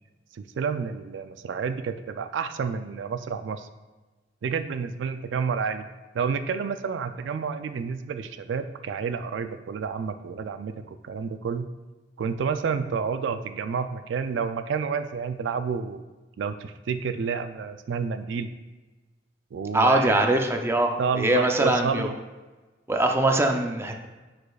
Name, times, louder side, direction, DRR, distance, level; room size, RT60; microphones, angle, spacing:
voice 1, 0.3-3.7 4.4-5.9 6.1-11.7 12.2-16.0 16.4-18.5 19.5-20.3 21.0-22.1, right 6 dB, 80° right, 10 dB, 0.4 m, -30 dB
voice 2, 19.7-22.1 22.9-23.9, right 1 dB, 15° right, 3 dB, 0.5 m, -22 dB
10.5 x 5.1 x 2.3 m, 1.2 s
head